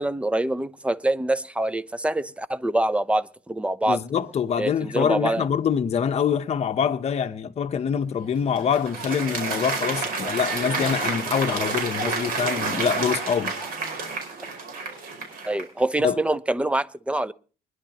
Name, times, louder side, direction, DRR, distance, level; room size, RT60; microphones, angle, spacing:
voice 1, 0.0-4.0 4.6-5.4 15.4-17.3, right 1 dB, 5° right, 0.6 m, -25 dB
voice 2, 3.9-13.5 16.0-16.2, left 7 dB, 40° left, 0.8 m, -25 dB
Applause, 8.2-15.8, right 4 dB, 60° right, 5.2 m, -29 dB
23.0 x 11.0 x 2.9 m
cardioid pair, 110°, 17 cm